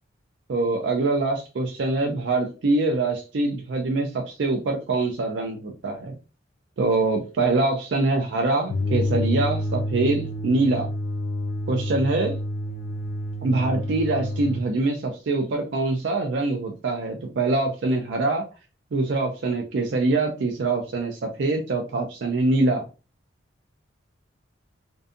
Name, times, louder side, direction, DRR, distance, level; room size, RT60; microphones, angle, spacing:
voice 1, 0.5-6.1 6.8-10.9 11.7-12.4 13.4-18.5 18.9-22.9, right 2 dB, 60° right, 2 dB, 0.4 m, -24 dB
sound 1, 8.7-14.7, left 1 dB, 50° left, 0.3 m, -28 dB
2.6 x 2.2 x 2.5 m, 0.33 s
head